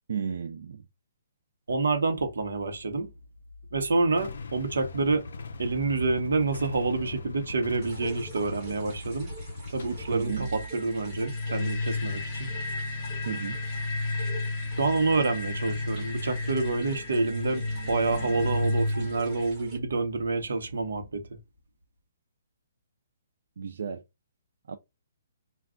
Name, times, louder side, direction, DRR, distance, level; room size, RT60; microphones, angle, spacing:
voice 1, 0.1-0.8 10.1-10.5 13.3-13.6 23.6-24.0 24.7-24.8, right 7 dB, 55° right, 0.3 m, -33 dB
voice 2, 1.7-3.1 3.7-5.3 5.6-9.3 9.7-12.5 14.8-21.3, right 3 dB, 85° right, 0.9 m, -28 dB
Motorcycle / Engine starting / Idling, 4.1-10.3, left 4 dB, 60° left, 0.4 m, -41 dB
sound 1, 7.8-19.8, right 1 dB, 10° right, 0.9 m, -48 dB
sound 2, 10.3-19.5, left 2 dB, 15° left, 0.6 m, -32 dB
2.4 x 2.3 x 3.5 m
hypercardioid pair, 180°, 0 cm